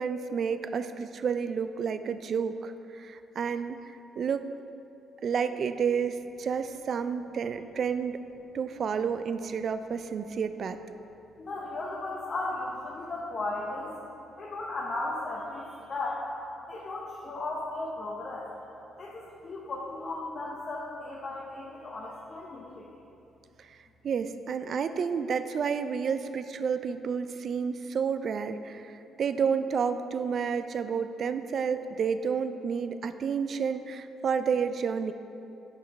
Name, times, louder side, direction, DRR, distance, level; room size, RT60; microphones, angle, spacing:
voice 1, 0.0-3.8 4.2-4.5 5.2-8.2 8.5-10.8 23.6-23.8 24.0-28.9 29.2-35.1, right 6 dB, 55° right, 10 dB, 0.3 m, -30 dB
voice 2, 11.4-14.0 14.4-16.2 16.7-18.5 19.0-23.0, left 2 dB, 45° left, -4 dB, 0.8 m, -36 dB
6.0 x 5.1 x 4.6 m, 2.7 s
cardioid pair, 90°, 0 cm